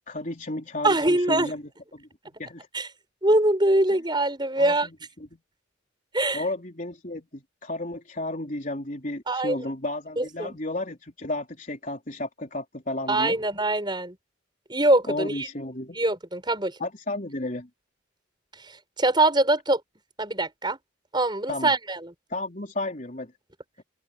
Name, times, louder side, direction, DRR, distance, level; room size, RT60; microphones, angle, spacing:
voice 1, 0.1-2.1 2.4-2.7 4.6-5.4 6.3-13.4 15.1-16.0 16.8-17.7 21.5-21.7 22.3-23.3, left 2 dB, 40° left, 4.0 m, -33 dB
voice 2, 0.8-1.5 2.7-2.9 3.2-4.9 6.1-6.4 9.3-9.6 10.2-10.6 13.1-14.2 14.7-15.5 15.9-16.8 19.0-19.8 20.2-20.8 21.1-22.1, right 2 dB, 20° right, 6.3 m, -23 dB
open air
head